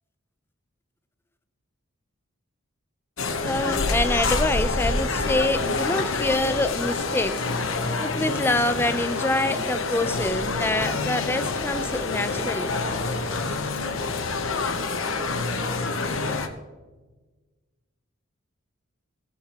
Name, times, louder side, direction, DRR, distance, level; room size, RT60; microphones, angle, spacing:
sound 1, 3.2-16.5, left 3 dB, 65° left, 1.1 m, -27 dB
voice 1, 3.4-7.5 8.0-12.8, left 2 dB, 10° left, 0.5 m, -26 dB
15.5 x 11.5 x 3.0 m
head